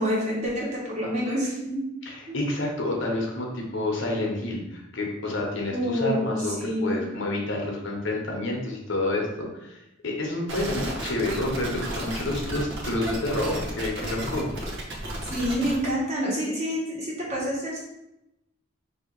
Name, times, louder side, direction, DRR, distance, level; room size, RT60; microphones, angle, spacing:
voice 1, 0.0-1.8 2.3-2.4 5.7-7.0 15.2-17.8, equal, 35° right, -5 dB, 1.3 m, -27 dB
voice 2, 2.0-14.5, left 1 dB, 65° left, 0 dB, 0.9 m, -29 dB
sound 1, 10.5-15.9, right 1 dB, 65° right, 0.8 m, -33 dB
3.2 x 2.8 x 4.5 m, 0.88 s
head